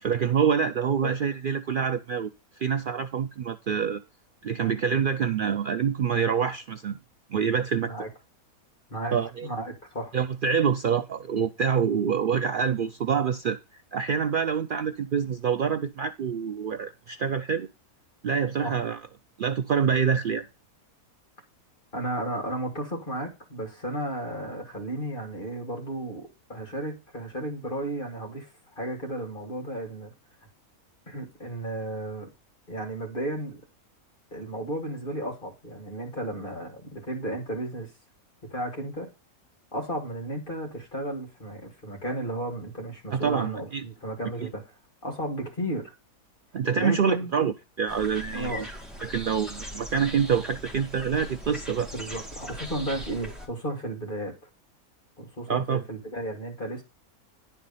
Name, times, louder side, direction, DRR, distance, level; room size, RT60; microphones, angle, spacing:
voice 1, 0.0-2.3 2.6-4.0 4.4-7.0 7.3-7.9 9.1-9.5 10.1-17.7 18.2-19.0 19.4-20.4 43.1-43.8 44.4-44.5 46.5-48.7 49.0-51.9 55.5-55.8, right 7 dB, 80° right, 0.4 m, -26 dB
voice 2, 8.9-10.1 18.6-18.7 21.9-30.1 31.1-32.3 32.7-33.6 34.3-37.9 38.5-39.1 39.7-44.7 45.0-45.9 46.8-47.3 48.3-48.7 51.9-54.3 55.2-56.8, right 1 dB, 35° left, 2.7 m, -33 dB
sound 1, 47.9-53.5, equal, ahead, 1.9 m, -40 dB
10.5 x 4.6 x 5.6 m
omnidirectional pair, 1.6 m